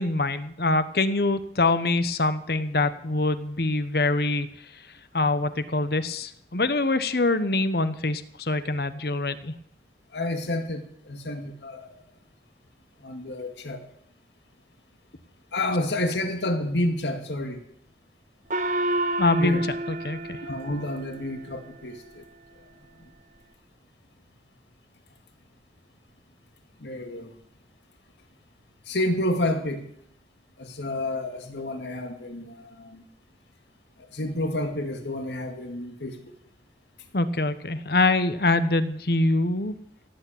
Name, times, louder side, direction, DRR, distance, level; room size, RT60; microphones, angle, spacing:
voice 1, 0.0-4.5 5.1-9.5 19.2-19.6 19.9-20.4 37.1-39.7, left 2 dB, 60° left, 13 dB, 1.1 m, -24 dB
voice 2, 10.1-12.0 13.0-13.8 15.5-17.6 19.4-19.6 20.4-22.3 22.6-22.7 23.0-23.1 26.8-27.3 28.9-29.9 30.6-33.1 34.1-36.3, left 1 dB, 85° left, 6 dB, 2.2 m, -30 dB
Gong, 18.5-21.4, right 1 dB, 45° right, 1.2 m, -29 dB
17.0 x 8.6 x 8.7 m, 0.69 s
head